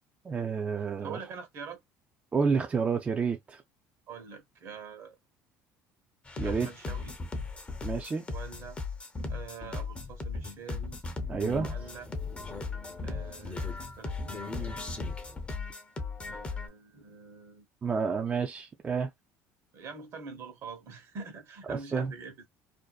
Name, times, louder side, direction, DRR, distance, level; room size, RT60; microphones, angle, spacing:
voice 1, 0.2-1.2 2.3-3.6 6.4-6.7 7.8-8.3 11.3-11.7 17.8-19.1 21.7-22.1, right 5 dB, 25° right, 0.4 m, -29 dB
voice 2, 0.8-1.8 4.1-5.2 6.4-7.1 8.3-8.8 9.3-11.0 11.5-12.1 13.0-15.0 16.3-17.6 19.7-22.5, right 5 dB, 55° right, 0.9 m, -45 dB
sound 1, 6.3-16.7, left 3 dB, 20° left, 0.6 m, -37 dB
2.6 x 2.1 x 2.3 m
cardioid pair, 110°, 6 cm